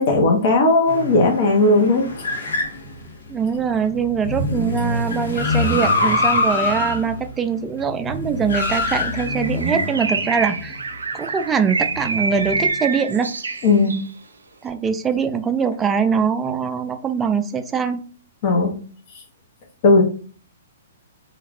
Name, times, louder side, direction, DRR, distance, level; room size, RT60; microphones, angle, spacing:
voice 1, 0.0-2.1 13.6-14.0 18.4-18.8 19.8-20.0, left 2 dB, 50° left, 1 dB, 0.8 m, -16 dB
sound 1, 0.9-10.8 11.9-12.7, left 2 dB, 80° left, 0.9 m, -25 dB
voice 2, 3.3-10.8 11.1-13.3 14.6-18.0, right 6 dB, 15° right, 8 dB, 0.3 m, -22 dB
Bird, 9.2-14.1, right 4 dB, 85° right, 0.4 m, -26 dB
2.3 x 2.3 x 3.4 m, 0.40 s
hypercardioid pair, 130°, 0 cm